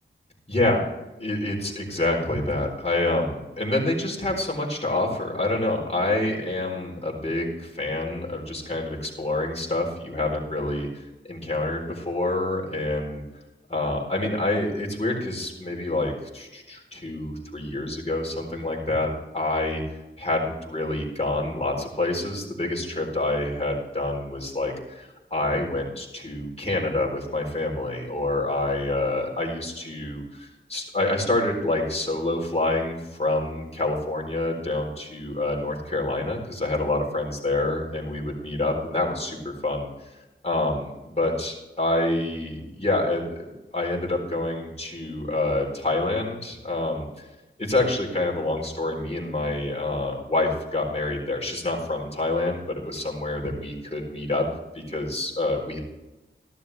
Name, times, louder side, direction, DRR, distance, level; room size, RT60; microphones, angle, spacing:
voice 1, 0.5-0.8 1.2-13.2 13.7-19.1 19.3-19.8 20.2-39.9 40.4-47.2 47.6-54.4 54.7-55.8, left 2 dB, 30° left, -1 dB, 4.2 m, -27 dB
14.5 x 12.0 x 3.5 m, 1.0 s
wide cardioid pair, 75°, 20 cm